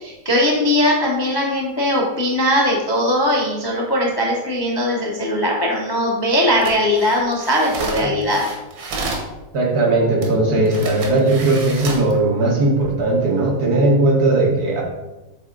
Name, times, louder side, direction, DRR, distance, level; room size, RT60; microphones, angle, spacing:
voice 1, 0.0-8.4, left 1 dB, 40° left, -1 dB, 0.3 m, -19 dB
sound 1, 6.5-9.3 10.2-10.3 10.7-12.1 12.7-12.9, right 3 dB, 85° right, 1.9 m, -30 dB
voice 2, 9.5-14.8, right 2 dB, 55° right, -1 dB, 1.6 m, -18 dB
7.8 x 3.5 x 3.8 m, 1.1 s
omnidirectional pair, 2.1 m